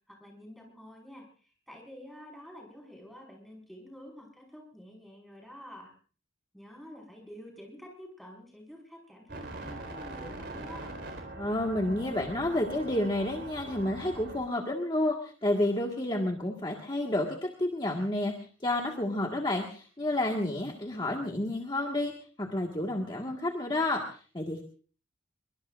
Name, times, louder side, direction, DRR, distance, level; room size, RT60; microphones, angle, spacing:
voice 1, 0.1-5.9 6.5-10.9, equal, ahead, 0 dB, 5.4 m, -48 dB
sound 1, 9.3-14.4, right 2 dB, 60° right, 4.3 m, -42 dB
voice 2, 11.4-18.3 18.6-22.1 22.4-24.6, left 1 dB, 25° left, 1 dB, 1.7 m, -30 dB
24.0 x 23.0 x 2.6 m, 0.41 s
head